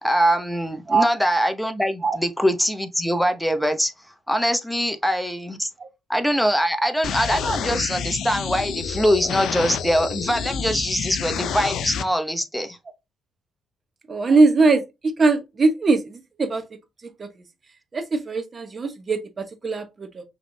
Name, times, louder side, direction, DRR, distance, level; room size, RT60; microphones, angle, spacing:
voice 1, 0.0-3.9 4.3-5.7 6.1-12.8, equal, ahead, 0.8 m, -23 dB
sound 1, 7.0-12.0, left 7 dB, 75° left, 0.6 m, -29 dB
voice 2, 14.1-14.8 15.2-16.6 17.2-17.3 17.9-20.2, right 3 dB, 35° right, 1.1 m, -21 dB
5.7 x 3.3 x 2.7 m
cardioid pair, 90°, 0 cm